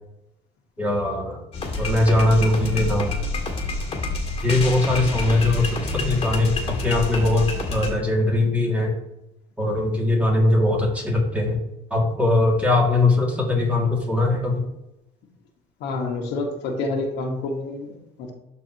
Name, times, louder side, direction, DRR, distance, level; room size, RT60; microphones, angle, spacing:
voice 1, 0.8-1.4 1.8-3.1 3.9-4.0 4.4-6.5 6.8-8.9 9.6-11.6 11.9-14.6, left 2 dB, 10° right, -2 dB, 2.3 m, -21 dB
sound 1, 1.5-7.9, left 2 dB, 35° left, 1.8 m, -28 dB
voice 2, 15.8-18.3, left 2 dB, 90° left, 1 dB, 1.5 m, -28 dB
12.0 x 4.2 x 3.0 m, 0.88 s
cardioid pair, 110°, 17 cm